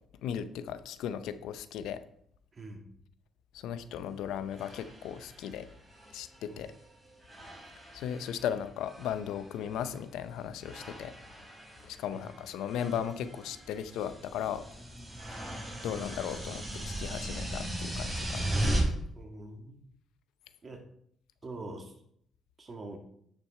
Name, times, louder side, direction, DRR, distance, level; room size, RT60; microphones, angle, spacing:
voice 1, 0.2-2.0 3.5-5.7 6.1-6.7 7.9-11.1 11.9-14.6 15.8-18.5 18.9-19.0, left 9 dB, 90° left, 12 dB, 0.7 m, -36 dB
voice 2, 2.5-2.9 6.5-6.6 12.1-12.2 19.2-19.8 20.6-20.8 21.4-22.0 22.6-23.0, right 2 dB, 35° right, 3 dB, 2.2 m, -44 dB
sound 1, 3.9-4.0 4.5-6.9 7.2-8.5 8.8-10.0 10.6-18.8, right 1 dB, 10° right, 4.2 m, -38 dB
10.0 x 6.2 x 4.4 m, 0.68 s
cardioid pair, 90°, 0 cm